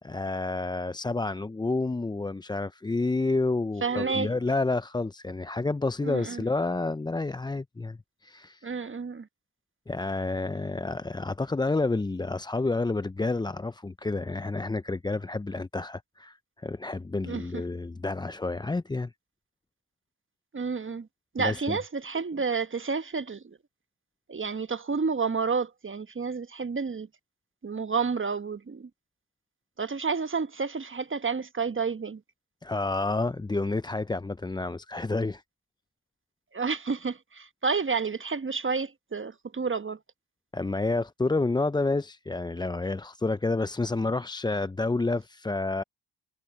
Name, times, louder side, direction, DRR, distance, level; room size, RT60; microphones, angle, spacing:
voice 1, 0.0-8.7 9.9-19.1 21.4-21.8 32.6-35.4 40.5-45.8, left 3 dB, 10° left, 0.6 m, -29 dB
voice 2, 3.8-4.4 6.0-6.4 8.6-9.3 17.3-17.4 20.5-21.1 21.3-23.6 24.3-27.1 27.6-28.9 29.8-32.2 36.5-40.0, right 5 dB, 30° right, 1.3 m, -30 dB
hypercardioid pair, 45°, 42 cm